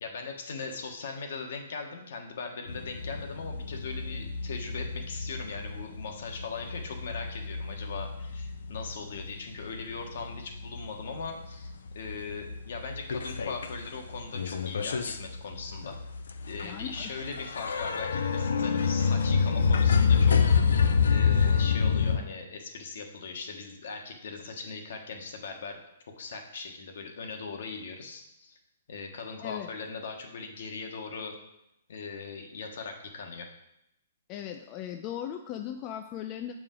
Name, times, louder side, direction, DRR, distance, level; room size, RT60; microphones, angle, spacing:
voice 1, 0.0-16.0 16.5-20.5 21.1-25.8 26.2-28.6 28.9-31.3 31.9-33.5, left 4 dB, 65° left, 3 dB, 1.3 m, -40 dB
sound 1, 2.7-9.3 9.7-10.8 11.2-11.3 11.6-11.7 12.0-13.8 14.1-22.2, left 6 dB, 90° left, 0.6 m, -26 dB
voice 2, 16.6-17.1 29.4-29.7 34.3-36.5, left 10 dB, 25° left, 5 dB, 0.4 m, -38 dB
7.1 x 4.9 x 3.8 m, 0.83 s
hypercardioid pair, 160°, 0 cm